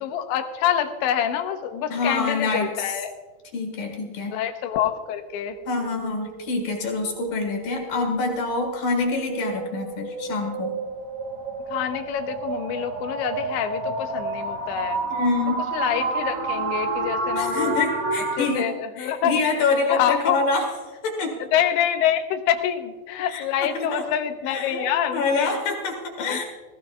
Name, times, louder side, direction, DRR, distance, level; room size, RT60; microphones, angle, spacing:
voice 1, 0.0-3.1 4.3-5.6 11.7-15.0 15.7-17.8 18.4-19.3 19.9-20.4 21.5-25.6 26.3-26.4, left 10 dB, 90° left, 7 dB, 3.1 m, -26 dB
voice 2, 1.9-3.0 3.5-4.4 5.7-10.7 15.1-15.6 17.4-20.7 21.0-21.4 23.3-24.0 24.5-24.9 25.1-26.4, left 3 dB, 60° left, 2 dB, 3.2 m, -26 dB
sound 1, 5.3-18.5, right 3 dB, 55° right, 3.0 m, -30 dB
19.5 x 16.0 x 2.3 m, 1.3 s
omnidirectional pair, 5.1 m